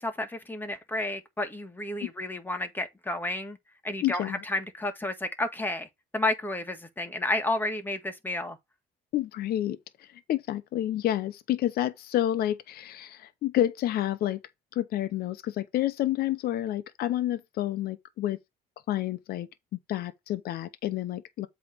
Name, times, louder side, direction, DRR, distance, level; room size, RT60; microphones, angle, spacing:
voice 1, 0.0-3.6 3.8-5.9 6.1-8.6, left 2 dB, 10° left, 1.7 m, -31 dB
voice 2, 4.0-4.4 9.1-14.4 14.7-18.4 18.9-19.5 19.9-21.5, left 13 dB, 65° left, 0.8 m, -29 dB
8.0 x 3.3 x 6.1 m
cardioid pair, 110°, 17 cm